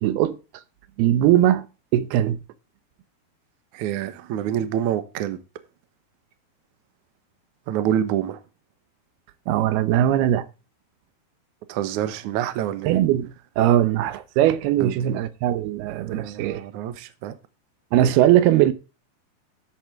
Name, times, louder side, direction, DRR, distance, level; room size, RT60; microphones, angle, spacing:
voice 1, 0.0-0.4 1.0-1.7 1.9-2.4 9.5-10.5 12.9-13.3 13.6-16.6 17.9-18.7, right 12 dB, 85° right, 2.9 m, -20 dB
voice 2, 3.7-5.4 7.7-8.4 11.7-13.0 14.8-15.2 16.1-17.4, right 10 dB, 65° right, 2.1 m, -27 dB
13.0 x 7.6 x 3.5 m
omnidirectional pair, 4.4 m